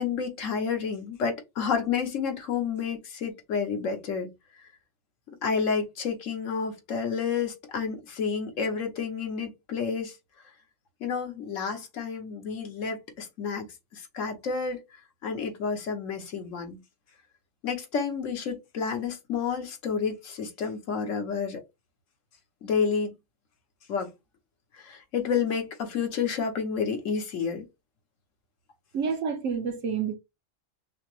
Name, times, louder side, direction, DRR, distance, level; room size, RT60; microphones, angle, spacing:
voice 1, 0.0-4.3 5.4-10.1 11.0-13.7 13.9-14.8 15.2-16.8 17.6-21.6 22.6-23.1 23.9-24.1 24.7-27.6, left 6 dB, 85° left, 1.3 m, -30 dB
voice 2, 28.9-30.1, right 6 dB, 75° right, 1.2 m, -28 dB
5.5 x 2.0 x 3.0 m
omnidirectional pair, 1.3 m